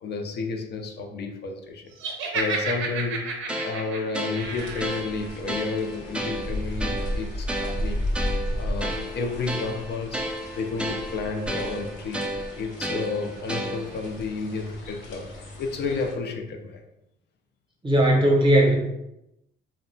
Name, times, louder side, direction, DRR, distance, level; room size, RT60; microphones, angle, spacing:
voice 1, 0.0-8.0 8.5-12.3 12.6-16.8, left 4 dB, 60° left, 3 dB, 0.4 m, -31 dB
Laughter, 2.0-5.0, right 4 dB, 80° right, 0.5 m, -31 dB
sound 1, 3.5-14.1, right 1 dB, 5° right, 0.3 m, -33 dB
sound 2, 4.4-16.1, equal, 85° left, 0.7 m, -34 dB
voice 2, 17.8-18.7, right 1 dB, 25° right, -1 dB, 0.7 m, -18 dB
2.7 x 2.1 x 2.6 m, 0.86 s
cardioid pair, 90°, 20 cm